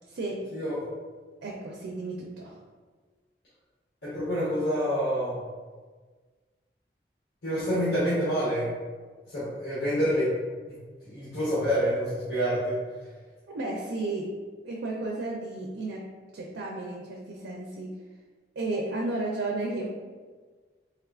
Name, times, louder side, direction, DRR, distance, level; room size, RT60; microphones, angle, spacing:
voice 1, 0.1-0.4 1.4-2.6 13.5-14.3 14.6-16.0 16.3-17.9 18.6-19.9, right 2 dB, 90° right, -1 dB, 0.4 m, -33 dB
voice 2, 4.0-5.4 7.4-8.7 9.3-10.3 10.7-10.8 11.0-12.8, equal, 75° left, -11 dB, 0.9 m, -27 dB
3.5 x 2.3 x 2.3 m, 1.4 s
head